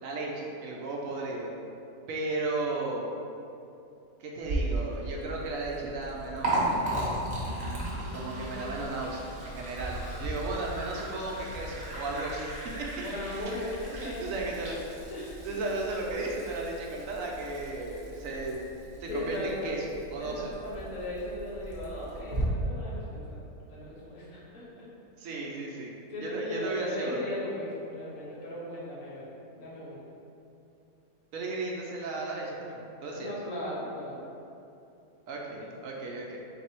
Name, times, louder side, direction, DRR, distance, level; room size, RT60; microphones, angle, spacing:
voice 1, 0.0-1.5 2.1-3.1 4.2-6.8 8.1-12.9 14.0-14.8 15.4-18.6 19.0-19.8 20.1-20.5 25.2-25.9 26.2-27.3 31.3-33.3 35.3-36.4, right 2 dB, 70° right, -2 dB, 0.9 m, -35 dB
Liquid, 4.4-22.4, right 1 dB, 40° right, 0.9 m, -36 dB
voice 2, 7.9-9.0 13.0-14.3 15.1-15.5 19.0-19.7 20.2-24.9 26.1-29.3 29.5-30.0 33.1-34.2, left 1 dB, 65° left, -6 dB, 1.3 m, -38 dB
3.9 x 2.6 x 4.3 m, 2.7 s
omnidirectional pair, 1.5 m